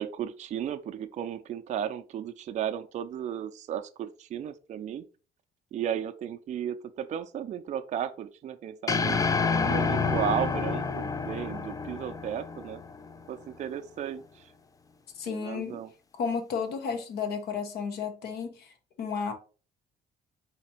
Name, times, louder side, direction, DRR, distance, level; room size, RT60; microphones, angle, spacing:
voice 1, 0.0-5.0 5.7-9.2 9.6-12.8 13.3-14.5 15.3-15.9, right 9 dB, 45° right, 0.4 m, -34 dB
sound 1, 8.9-13.3, left 5 dB, 20° left, 0.4 m, -28 dB
voice 2, 15.2-15.8 16.1-18.7 19.0-19.3, left 6 dB, 75° left, 1.1 m, -32 dB
4.1 x 2.9 x 4.3 m
cardioid pair, 110°, 17 cm